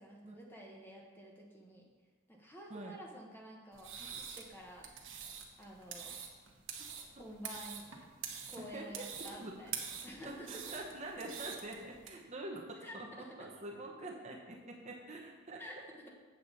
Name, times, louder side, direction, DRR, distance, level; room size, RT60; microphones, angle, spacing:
voice 1, 0.0-1.8 2.3-4.9 5.6-6.2 7.1-7.8 8.5-10.8 12.8-13.3 15.6-16.1, equal, 10° left, -1 dB, 1.0 m, -50 dB
sound 1, 3.7-12.1, right 7 dB, 75° right, 1.1 m, -46 dB
voice 2, 8.6-9.5 10.2-15.6, right 2 dB, 35° right, 0 dB, 0.9 m, -46 dB
8.1 x 6.5 x 4.1 m, 1.4 s
head